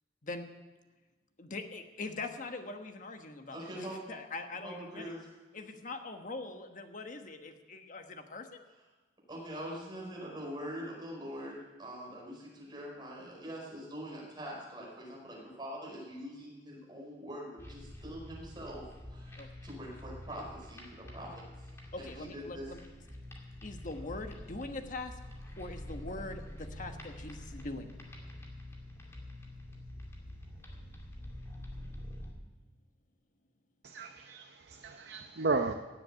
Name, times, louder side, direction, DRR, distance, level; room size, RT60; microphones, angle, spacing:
voice 1, 1.4-5.1 5.5-8.6 19.3-19.5 21.9-22.8 23.6-25.2 25.6-27.9, left 3 dB, 45° left, 1.2 m, -42 dB
voice 2, 3.5-4.0 4.6-5.2 9.3-18.8 19.1-19.4 19.6-21.7 22.0-22.7 24.0-24.1, equal, 25° right, 5.0 m, -43 dB
sound 1, 17.6-32.3, left 1 dB, 15° left, 2.3 m, -47 dB
voice 3, 33.8-35.7, right 3 dB, 60° right, 0.7 m, -34 dB
16.5 x 7.7 x 8.3 m
head